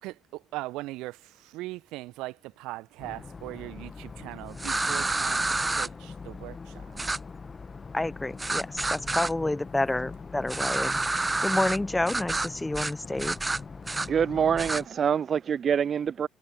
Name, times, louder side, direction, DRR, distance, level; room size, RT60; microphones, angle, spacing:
voice 1, 0.0-7.1 11.3-11.4, right 19 dB, 65° right, 1.4 m, -40 dB
sound 1, 3.0-14.9, left 4 dB, 30° left, 1.3 m, -42 dB
sound 2, 4.6-5.9 7.0-7.2 8.4-9.3 10.5-11.8 12.1-12.5 12.7-12.9 13.2-14.1 14.6-14.8, right 2 dB, 20° right, 0.7 m, -28 dB
voice 2, 7.9-13.6, left 2 dB, 15° left, 0.8 m, -29 dB
voice 3, 14.1-16.3, right 7 dB, 45° right, 0.4 m, -25 dB
figure-of-eight pair, 50°, 0 cm